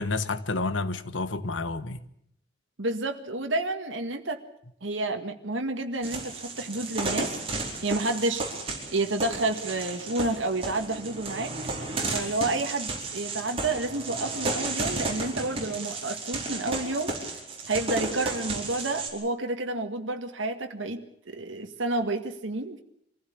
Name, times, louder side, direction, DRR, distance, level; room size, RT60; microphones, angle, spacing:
voice 1, 0.0-2.0, left 3 dB, 85° left, 1.4 m, -29 dB
voice 2, 2.8-4.4 4.8-8.4 8.9-11.5 12.1-17.1 17.7-22.8, right 2 dB, 85° right, 1.8 m, -30 dB
sound 1, 6.0-19.1, right 3 dB, 30° right, 4.6 m, -33 dB
25.0 x 15.5 x 8.6 m
head